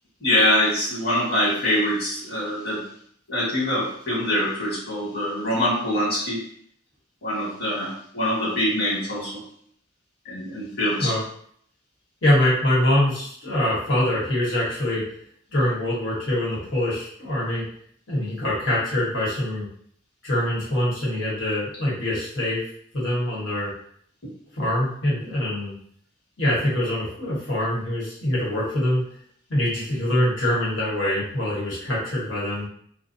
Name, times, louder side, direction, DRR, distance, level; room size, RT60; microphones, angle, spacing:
voice 1, 0.2-2.8 3.3-6.4 7.2-9.4 10.2-11.1, left 1 dB, 50° left, -6 dB, 1.2 m, -24 dB
voice 2, 12.2-15.0 15.5-17.6 18.1-19.7 20.2-22.6 22.9-23.7 24.5-25.7 26.4-29.0 29.5-32.7, left 1 dB, 85° left, -6 dB, 1.2 m, -24 dB
2.5 x 2.2 x 2.6 m, 0.62 s
head